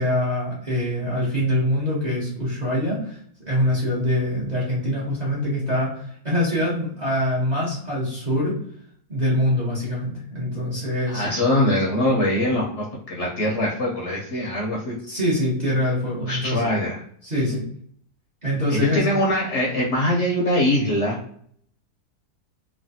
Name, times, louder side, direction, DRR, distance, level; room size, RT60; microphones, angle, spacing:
voice 1, 0.0-8.5 9.1-11.4 15.1-16.7 17.2-17.6 18.4-19.0, equal, 35° right, -6 dB, 0.7 m, -24 dB
voice 2, 11.1-15.0 16.3-17.0 18.7-21.2, left 1 dB, 60° left, -3 dB, 0.8 m, -22 dB
3.3 x 2.1 x 2.6 m, 0.62 s
omnidirectional pair, 1.7 m